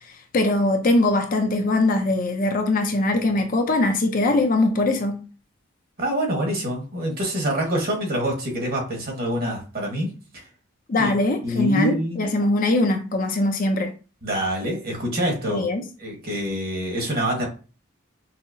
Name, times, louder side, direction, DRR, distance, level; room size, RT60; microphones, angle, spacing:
voice 1, 0.3-5.2 10.9-13.9 15.5-15.8, left 2 dB, 40° left, 0.5 m, -21 dB
voice 2, 6.0-10.5 11.0-11.1 11.4-12.2 14.2-15.6 16.0-17.5, equal, 45° right, 1.3 m, -26 dB
5.5 x 2.0 x 2.6 m
head